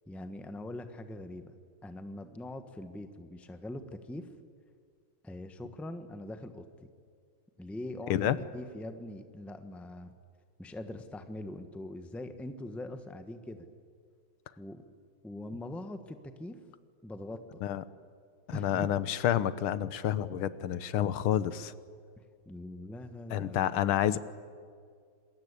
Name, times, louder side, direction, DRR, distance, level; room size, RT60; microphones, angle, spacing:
voice 1, 0.1-1.5 1.8-4.3 5.2-6.9 7.6-8.1 8.5-10.1 10.6-13.7 14.6-14.8 15.2-16.6 17.0-17.6 18.5-18.9 22.2-23.8, left 1 dB, ahead, 8 dB, 0.8 m, -42 dB
voice 2, 18.5-21.7 23.3-24.2, left 11 dB, 85° left, 15 dB, 1.8 m, -29 dB
27.0 x 21.0 x 8.3 m, 2.1 s
omnidirectional pair, 2.3 m